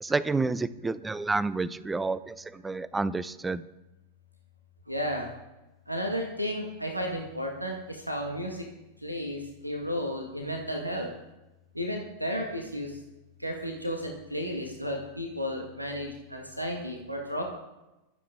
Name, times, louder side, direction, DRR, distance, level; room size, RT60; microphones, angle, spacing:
voice 1, 0.0-3.6, right 3 dB, 10° right, 18 dB, 0.6 m, -29 dB
voice 2, 4.9-5.4 5.9-8.7 9.0-11.1 11.7-13.0 13.4-17.4, equal, 90° right, 2 dB, 2.0 m, -33 dB
25.0 x 8.6 x 3.9 m, 0.99 s
figure-of-eight pair, 90°, 0 cm